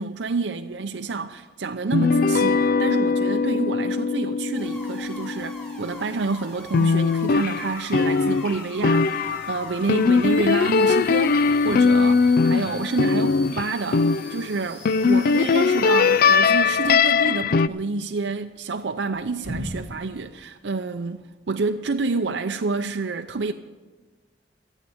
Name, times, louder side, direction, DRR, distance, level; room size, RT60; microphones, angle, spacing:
voice 1, 0.0-23.5, right 3 dB, 85° right, 0.6 m, -28 dB
sound 1, 1.9-6.3 6.7-14.5 14.9-17.7, left 5 dB, 55° left, 0.4 m, -21 dB
sound 2, 4.5-16.4, left 1 dB, 10° left, 3.6 m, -43 dB
sound 3, 16.5-19.9, left 1 dB, 75° left, 5.7 m, -42 dB
14.5 x 8.3 x 9.2 m
head